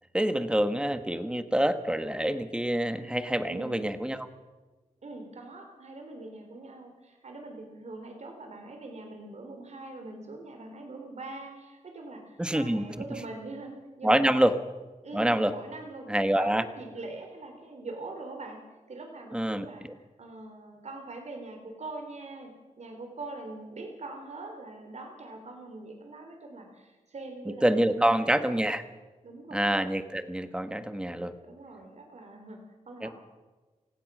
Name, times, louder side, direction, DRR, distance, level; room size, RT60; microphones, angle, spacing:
voice 1, 0.1-4.3 12.4-12.8 14.0-14.5 15.1-15.5 16.1-16.6 19.3-19.7 27.6-28.8 29.5-31.3 33.0-33.1, right 1 dB, 5° right, 10 dB, 1.4 m, -26 dB
voice 2, 3.4-3.8 5.0-14.5 15.0-19.8 20.2-28.6 29.2-29.7 31.4-33.1, right 2 dB, 60° right, 4 dB, 3.6 m, -43 dB
28.0 x 16.0 x 6.2 m, 1.3 s
wide cardioid pair, 90°, 13 cm